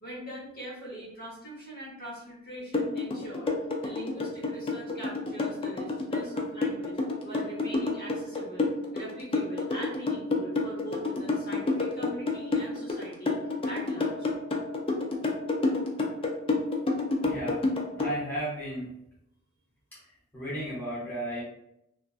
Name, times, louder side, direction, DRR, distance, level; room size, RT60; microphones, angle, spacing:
voice 1, 0.0-7.0 7.2-14.3, right 1 dB, 45° left, -5 dB, 0.9 m, -42 dB
sound 1, 2.7-18.1, left 3 dB, 25° left, 0.3 m, -28 dB
voice 2, 17.2-17.6 17.9-18.9 19.9-20.0 20.3-21.4, right 1 dB, 10° left, -9 dB, 0.7 m, -34 dB
2.5 x 2.2 x 2.3 m, 0.80 s
head